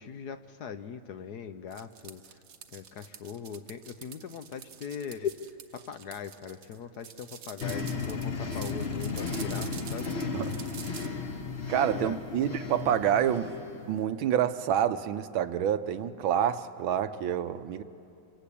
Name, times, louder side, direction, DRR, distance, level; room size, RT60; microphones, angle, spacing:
voice 1, 0.0-2.4 2.7-5.3 5.7-10.1 11.9-12.2 12.5-12.6, left 7 dB, 60° left, 10 dB, 1.2 m, -40 dB
sound 1, 1.7-11.1, right 7 dB, 55° right, 1.1 m, -47 dB
sound 2, 7.6-14.0, left 4 dB, 35° left, 1.2 m, -35 dB
voice 2, 11.7-13.6 13.9-17.8, right 9 dB, 85° right, 10 dB, 1.6 m, -28 dB
27.0 x 24.5 x 8.5 m, 2.7 s
omnidirectional pair, 2.2 m